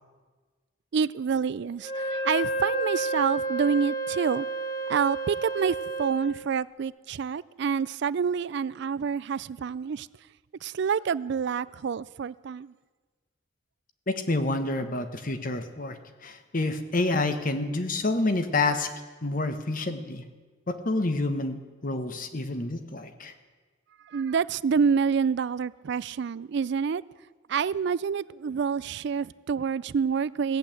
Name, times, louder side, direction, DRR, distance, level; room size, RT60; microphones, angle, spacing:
voice 1, 0.9-4.5 4.9-10.1 10.6-12.7 24.1-27.0 27.5-30.6, right 6 dB, 60° right, 0.4 m, -27 dB
Wind instrument woodwind instrument, 1.8-6.3, right 2 dB, 65° left, 5.9 m, -31 dB
voice 2, 14.1-16.0 16.2-18.9 19.2-20.2 20.7-23.3, left 2 dB, 45° left, 1.2 m, -28 dB
16.5 x 8.4 x 8.9 m
head